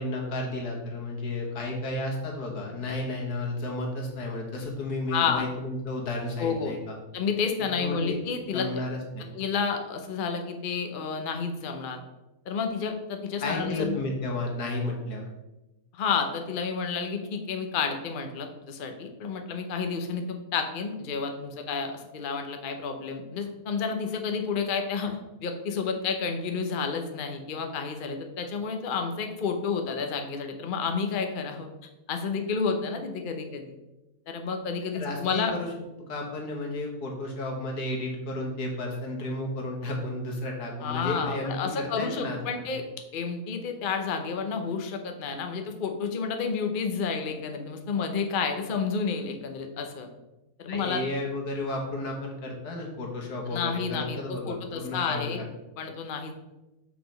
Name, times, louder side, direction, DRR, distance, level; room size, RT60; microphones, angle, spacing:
voice 1, 0.0-7.0 7.8-8.2 8.5-9.3 13.4-15.3 34.9-35.7 36.1-42.7 50.7-55.4, left 2 dB, 85° left, 1 dB, 2.0 m, -32 dB
voice 2, 5.1-5.5 6.4-6.7 7.1-8.7 9.3-12.0 12.5-14.0 15.9-31.7 32.1-33.7 34.3-35.5 40.8-42.8 43.1-50.1 50.6-51.0 53.5-55.4 55.8-56.3, left 5 dB, 45° left, 5 dB, 0.8 m, -30 dB
6.0 x 4.9 x 5.1 m, 0.99 s
omnidirectional pair, 1.6 m